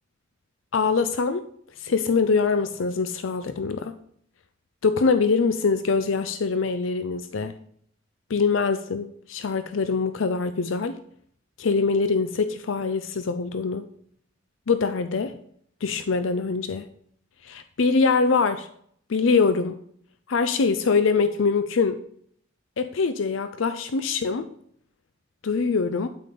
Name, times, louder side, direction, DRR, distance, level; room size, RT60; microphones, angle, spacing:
voice 1, 0.7-1.4 1.8-3.9 4.8-7.5 8.3-10.9 11.6-13.9 14.7-15.3 15.8-16.9 17.4-18.7 19.1-19.8 20.3-22.0 22.8-24.5 25.4-26.1, left 4 dB, 75° left, 10 dB, 0.5 m, -23 dB
9.1 x 8.7 x 3.8 m, 0.63 s
head